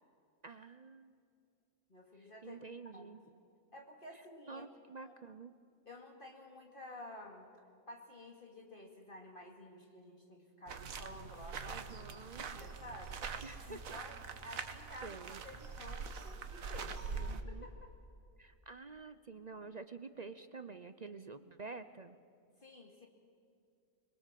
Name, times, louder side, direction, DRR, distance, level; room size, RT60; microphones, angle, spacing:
voice 1, 0.4-1.1 2.2-3.2 4.5-5.5 11.6-12.7 13.4-14.0 14.5-14.6 15.0-15.4 17.2-17.7 18.4-22.2, right 4 dB, 45° right, 11 dB, 0.6 m, -49 dB
voice 2, 1.9-2.6 2.9-3.2 3.7-4.7 5.0-5.1 5.8-7.5 7.9-13.2 13.7-17.9 22.6-23.1, left 1 dB, 40° left, 1 dB, 2.5 m, -52 dB
sound 1, 10.7-17.4, right 5 dB, 75° right, 1.6 m, -44 dB
26.0 x 22.5 x 7.5 m, 2.4 s
omnidirectional pair, 1.5 m